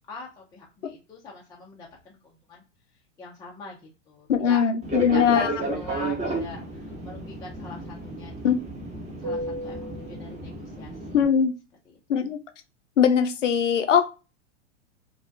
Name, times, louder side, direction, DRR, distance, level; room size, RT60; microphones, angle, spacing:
voice 1, 0.1-2.6 3.2-4.6 5.0-8.3 9.2-11.2 11.9-12.0, left 3 dB, 10° left, 0.4 m, -42 dB
voice 2, 4.3-5.5 8.4-8.6 11.1-11.5 12.1-12.4 13.0-14.1, left 7 dB, 85° left, 0.5 m, -21 dB
Fixed-wing aircraft airplane, 4.8-11.2, right 2 dB, 20° right, 0.8 m, -32 dB
2.3 x 2.1 x 2.5 m
figure-of-eight pair, 100°, 36 cm